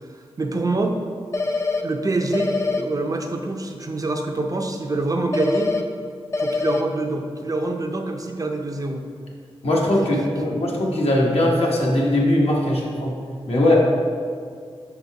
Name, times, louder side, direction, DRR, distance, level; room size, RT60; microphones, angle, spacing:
voice 1, 0.1-1.0 1.8-5.8 6.4-9.0 10.0-10.5, right 2 dB, 35° right, 3 dB, 0.5 m, -26 dB
sound 1, 1.3-1.8 2.3-2.8 5.3-5.8 6.3-6.8, left 3 dB, 25° left, 0.4 m, -23 dB
voice 2, 9.6-13.1 13.5-13.7, left 1 dB, 70° left, -3 dB, 1.1 m, -20 dB
5.5 x 4.0 x 4.6 m, 2.1 s
wide cardioid pair, 95°, 11 cm